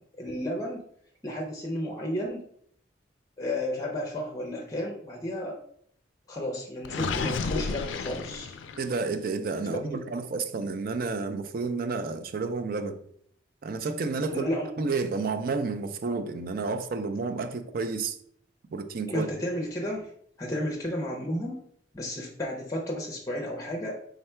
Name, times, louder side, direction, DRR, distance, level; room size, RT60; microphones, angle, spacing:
voice 1, 0.2-0.8 1.2-2.4 3.4-5.6 6.3-8.5 9.6-10.0 14.3-14.7 19.1-20.1 20.4-21.6 21.9-23.9, left 1 dB, 20° left, 0.5 m, -32 dB
Gurgling, 6.8-9.0, left 5 dB, 75° left, 0.3 m, -32 dB
voice 2, 8.8-13.0 13.6-14.4 14.8-18.2 18.7-19.3, right 4 dB, 50° right, 0.4 m, -30 dB
3.6 x 2.2 x 4.3 m
head